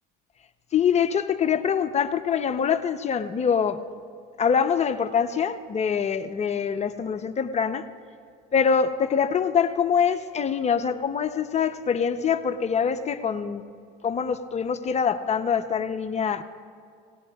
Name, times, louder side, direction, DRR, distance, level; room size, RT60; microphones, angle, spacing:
voice 1, 0.7-3.8 4.4-7.9 8.5-13.6 14.0-16.4, left 7 dB, 35° left, 10 dB, 0.7 m, -24 dB
28.5 x 18.0 x 2.4 m, 2.2 s
supercardioid pair, 90°, 20 cm